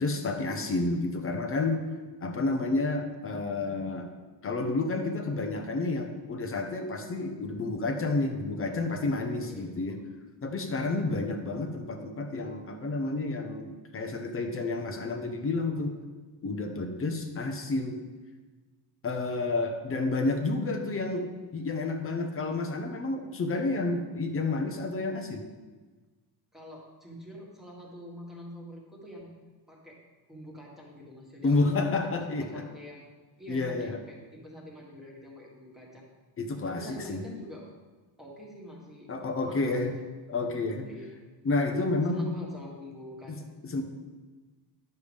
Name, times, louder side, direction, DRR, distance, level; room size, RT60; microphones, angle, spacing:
voice 1, 0.0-1.9 2.2-4.2 4.4-10.0 10.4-15.9 16.4-18.0 19.0-25.4 31.4-32.6 33.5-34.0 36.4-37.2 39.1-39.9 40.3-40.9 41.4-42.3 43.3-43.4 43.6-43.8, left 3 dB, 30° left, 5 dB, 0.9 m, -30 dB
voice 2, 9.5-10.0 26.5-29.3 29.7-30.0 30.3-33.1 33.4-36.0 36.6-37.7 38.2-39.1 39.4-39.9 40.9-41.2 42.1-43.5, equal, ahead, -4 dB, 1.7 m, -45 dB
10.0 x 6.9 x 3.4 m, 1.3 s
cardioid pair, 150°, 42 cm